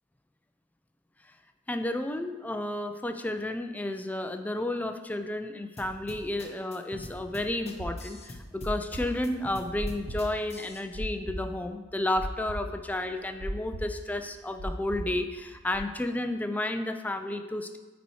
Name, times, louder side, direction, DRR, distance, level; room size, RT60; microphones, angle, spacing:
voice 1, 1.7-17.8, left 1 dB, 10° left, 7 dB, 0.3 m, -32 dB
sound 1, 5.8-10.8, left 2 dB, 30° left, 0.7 m, -44 dB
sound 2, 7.8-15.8, right 1 dB, 90° right, 1.0 m, -37 dB
9.6 x 4.1 x 3.1 m, 1.3 s
head